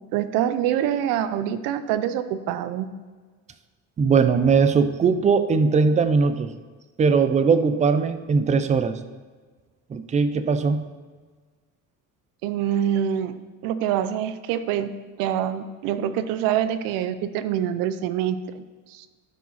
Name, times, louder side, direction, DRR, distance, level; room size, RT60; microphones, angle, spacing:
voice 1, 0.1-2.9 12.4-14.9 15.2-19.1, right 10 dB, 90° right, 12 dB, 0.6 m, -25 dB
voice 2, 4.0-6.5 7.0-9.0 9.9-10.8, right 5 dB, 20° right, 10 dB, 0.5 m, -20 dB
12.0 x 4.8 x 4.1 m, 1.4 s
cardioid pair, 135°, 33 cm